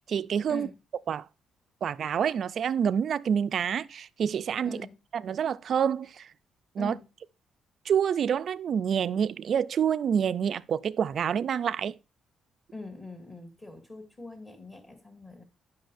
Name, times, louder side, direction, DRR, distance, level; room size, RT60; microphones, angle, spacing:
voice 1, 0.1-0.7 1.1-1.3 1.8-4.8 5.1-6.3 6.8-7.0 7.9-11.9, right 8 dB, 60° right, 0.4 m, -27 dB
voice 2, 12.7-15.4, left 2 dB, 25° left, 2.0 m, -43 dB
11.0 x 5.4 x 2.6 m
cardioid pair, 90°, 0 cm